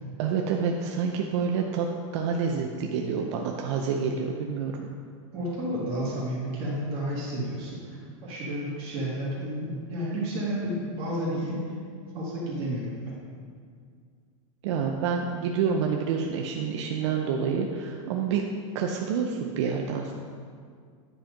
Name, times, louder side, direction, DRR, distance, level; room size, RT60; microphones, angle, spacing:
voice 1, 0.2-4.9 14.6-18.4 18.7-20.1, right 6 dB, 60° right, 2 dB, 0.7 m, -28 dB
voice 2, 5.3-11.7 12.1-13.1, equal, 35° right, -7 dB, 2.1 m, -31 dB
10.0 x 4.5 x 5.2 m, 2.1 s
supercardioid pair, 155°, 17 cm